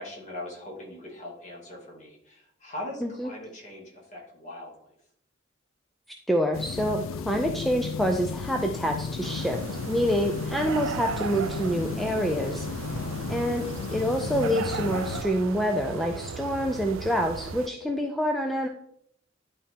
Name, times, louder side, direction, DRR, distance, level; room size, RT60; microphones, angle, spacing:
voice 1, 0.0-4.9 12.9-13.4, left 1 dB, 40° left, -3 dB, 2.5 m, -41 dB
voice 2, 3.0-3.3 6.3-12.7 13.3-18.7, equal, ahead, 2 dB, 0.5 m, -27 dB
sound 1, 6.5-15.2, left 5 dB, 80° left, 0.3 m, -34 dB
sound 2, 9.2-17.7, right 7 dB, 85° right, 0.4 m, -37 dB
11.0 x 4.2 x 3.7 m, 0.68 s
head